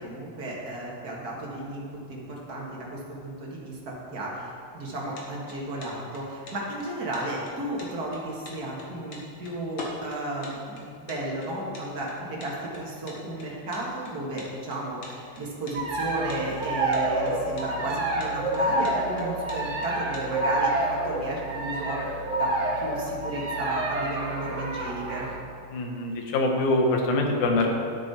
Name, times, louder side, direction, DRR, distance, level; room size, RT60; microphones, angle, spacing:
voice 1, 0.0-22.0 22.4-25.3, right 1 dB, 40° right, -3 dB, 1.8 m, -34 dB
sound 1, 5.1-20.3, left 2 dB, 50° left, 1.8 m, -44 dB
sound 2, 15.7-25.4, right 2 dB, 60° right, 0.7 m, -28 dB
voice 2, 25.7-27.8, left 2 dB, 85° left, 2 dB, 2.5 m, -24 dB
12.5 x 7.4 x 4.3 m, 2.3 s
omnidirectional pair, 3.3 m